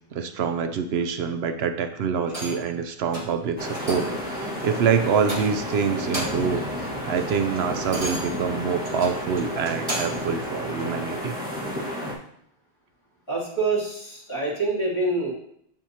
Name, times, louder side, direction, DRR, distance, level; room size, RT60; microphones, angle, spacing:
voice 1, 0.1-11.4, right 6 dB, 80° right, 8 dB, 0.9 m, -26 dB
sound 1, 2.3-2.7 3.1-3.4 3.7-4.2 4.6-4.8 5.2-5.7 6.0-6.6 6.9-10.3 10.8-10.9, right 1 dB, 35° right, 1.6 m, -34 dB
sound 2, 3.6-12.1, equal, 10° right, 1.5 m, -32 dB
voice 2, 13.3-15.3, right 3 dB, 25° left, -8 dB, 2.9 m, -26 dB
7.9 x 7.6 x 2.8 m, 0.72 s
omnidirectional pair, 1.1 m